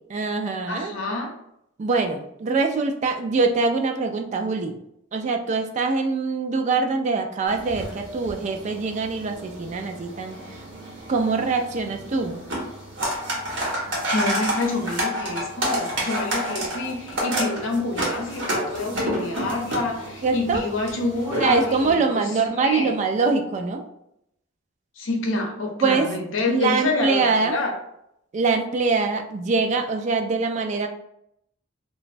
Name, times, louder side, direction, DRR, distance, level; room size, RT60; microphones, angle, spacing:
voice 1, 0.1-0.9 1.8-4.8 5.1-10.4 11.1-12.4 20.2-20.6 21.4-23.8 25.8-26.1 26.5-27.6 28.3-30.9, right 4 dB, 35° right, 5 dB, 0.3 m, -23 dB
voice 2, 0.7-1.3 14.1-23.0 25.0-27.8, left 2 dB, 80° left, 2 dB, 0.6 m, -27 dB
sound 1, 7.5-21.9, equal, 65° right, 0.9 m, -30 dB
3.0 x 2.2 x 2.5 m, 0.78 s
head